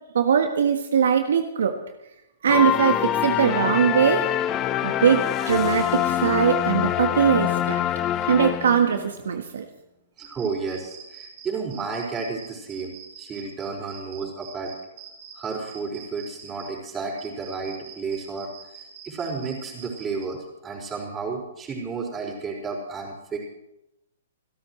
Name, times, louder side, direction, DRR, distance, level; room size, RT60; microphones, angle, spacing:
voice 1, 0.1-1.8 2.4-4.2 4.8-7.8 8.3-9.6, right 7 dB, 70° right, 6 dB, 1.4 m, -21 dB
sound 1, 2.5-9.1, left 11 dB, 25° left, 0.9 m, -25 dB
voice 2, 10.2-12.9 13.2-14.7 15.3-18.5 19.0-23.4, right 4 dB, 20° right, -1 dB, 5.0 m, -32 dB
sound 2, 10.2-16.7 17.2-20.3, right 8 dB, 50° right, 5.5 m, -44 dB
29.5 x 13.0 x 3.2 m, 0.89 s
hypercardioid pair, 130°, 0 cm